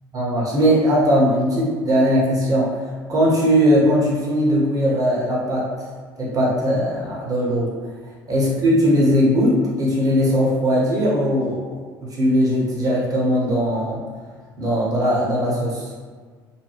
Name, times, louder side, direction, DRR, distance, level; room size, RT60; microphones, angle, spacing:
voice 1, 0.1-2.7 3.1-5.6 6.2-7.7 8.3-11.8 12.2-14.0 14.6-15.9, equal, 30° right, -5 dB, 0.9 m, -19 dB
2.4 x 2.1 x 3.3 m, 1.6 s
figure-of-eight pair, 60°, 12 cm